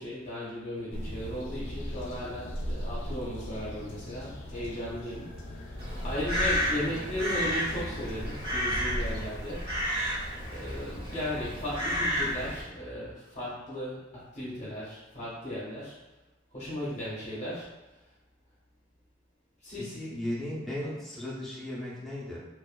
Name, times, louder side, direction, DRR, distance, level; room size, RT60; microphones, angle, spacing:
voice 1, 0.0-5.7 6.0-9.7 10.5-16.0 16.5-17.7 19.6-19.9, left 1 dB, 40° left, -8 dB, 0.6 m, -36 dB
sound 1, 0.9-9.3, equal, 85° left, 0.4 m, -40 dB
Crow, 5.8-12.6, equal, 55° right, 0.9 m, -31 dB
voice 2, 19.8-22.4, left 1 dB, ahead, -8 dB, 0.6 m, -36 dB
2.4 x 2.2 x 2.3 m, 1.1 s
head